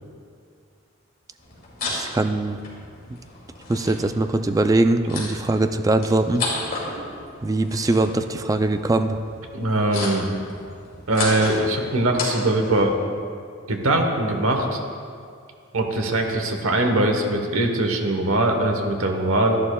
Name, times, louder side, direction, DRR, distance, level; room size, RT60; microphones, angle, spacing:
sound 1, 1.4-12.8, left 2 dB, 45° left, 2.5 m, -34 dB
voice 1, 1.9-2.6 3.7-6.5 7.4-9.2, right 2 dB, 15° right, 8 dB, 0.3 m, -21 dB
voice 2, 9.5-10.3 11.1-13.0 13.7-14.8 15.7-19.6, right 1 dB, 85° right, 4 dB, 1.1 m, -21 dB
12.0 x 11.0 x 2.3 m, 2.3 s
head